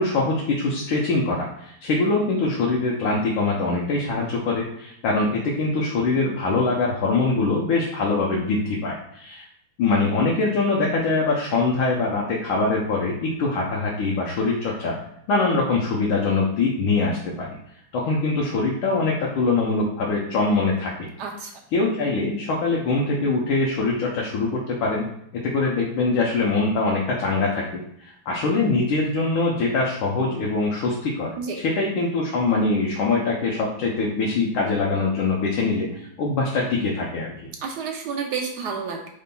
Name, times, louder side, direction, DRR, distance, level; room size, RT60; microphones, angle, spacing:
voice 1, 0.0-9.5 9.8-14.9 15.3-17.5 17.9-21.1 21.7-25.1 25.4-31.3 31.6-35.9 36.2-37.3, left 3 dB, 90° left, -3 dB, 1.5 m, -23 dB
voice 2, 21.2-21.5 31.4-31.6 37.6-39.1, right 5 dB, 70° right, 1 dB, 1.0 m, -30 dB
5.2 x 3.9 x 2.2 m, 0.73 s
omnidirectional pair, 2.2 m